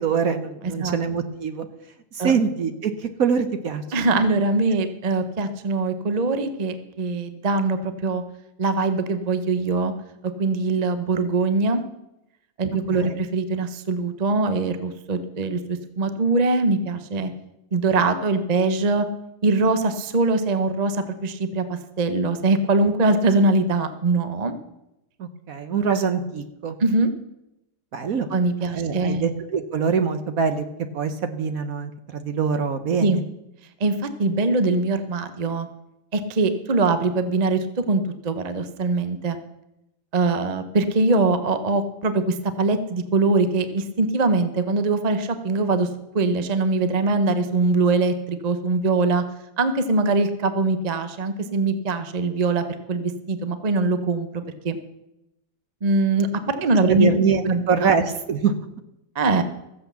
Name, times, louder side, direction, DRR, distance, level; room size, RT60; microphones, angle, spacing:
voice 1, 0.0-1.7 2.1-4.1 13.0-13.2 25.2-26.8 27.9-28.3 28.7-30.6 30.9-33.2 56.9-58.5, right 6 dB, 55° right, 8 dB, 1.2 m, -24 dB
voice 2, 0.6-1.0 2.2-2.3 3.9-8.2 8.6-9.9 10.4-11.8 12.6-17.3 17.7-19.1 19.4-24.5 26.8-27.1 28.3-29.2 33.0-33.2 33.8-35.7 36.1-39.4 40.1-45.9 46.1-49.2 49.6-54.8 55.8-56.3 56.6-57.1 57.4-58.0 59.2-59.4, right 3 dB, 35° right, 9 dB, 0.7 m, -22 dB
14.5 x 7.8 x 6.9 m, 0.88 s
omnidirectional pair, 2.0 m